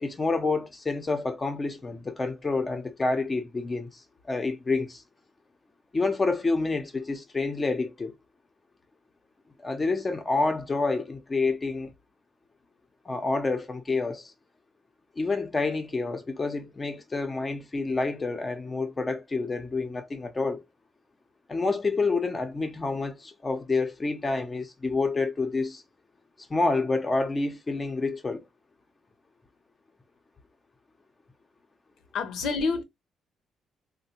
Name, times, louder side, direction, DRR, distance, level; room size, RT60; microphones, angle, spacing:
voice 1, 0.0-5.0 5.9-8.1 9.6-11.9 13.1-14.3 15.2-20.6 21.5-25.8 26.5-28.4, left 3 dB, 25° left, 0.7 m, -28 dB
voice 2, 32.1-32.8, left 4 dB, 80° left, 0.7 m, -27 dB
3.2 x 2.1 x 2.8 m
cardioid pair, 90°, 0 cm